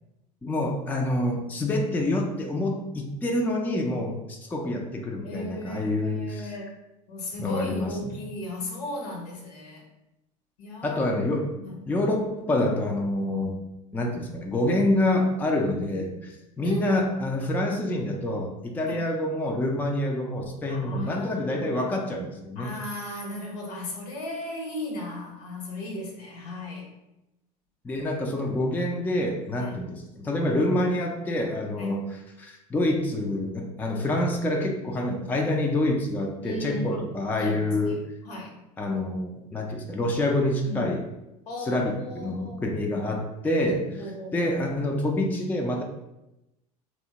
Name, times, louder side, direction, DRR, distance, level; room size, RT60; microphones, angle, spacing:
voice 1, 0.4-6.5 7.4-8.2 10.8-11.5 11.9-13.6 13.9-16.1 16.6-22.7 27.8-38.0 38.8-41.0 41.7-43.9 44.3-45.8, left 1 dB, 10° left, 1 dB, 0.3 m, -27 dB
voice 2, 5.2-6.7 7.1-9.8 10.6-11.0 11.6-11.8 15.7-16.1 16.6-17.1 18.9-19.0 20.7-22.0 22.6-26.9 29.6-29.7 31.8-32.0 36.4-37.0 37.3-38.5 40.6-40.9 41.5-42.8 43.9-44.5, left 1 dB, 75° left, 0 dB, 0.8 m, -36 dB
2.9 x 2.1 x 2.8 m, 0.93 s
hypercardioid pair, 90°, 20 cm